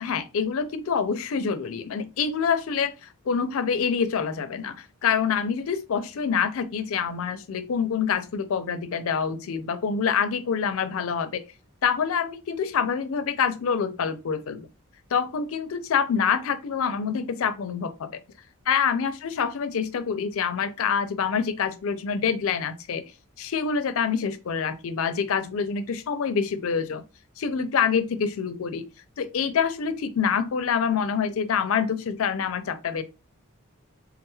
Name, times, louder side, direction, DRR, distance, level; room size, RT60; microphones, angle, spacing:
voice 1, 0.0-11.4 11.8-14.7 15.1-18.2 18.7-23.0 23.4-27.0 27.4-28.8 29.2-33.0, left 6 dB, 70° left, 0.4 m, -26 dB
3.5 x 2.3 x 3.0 m
head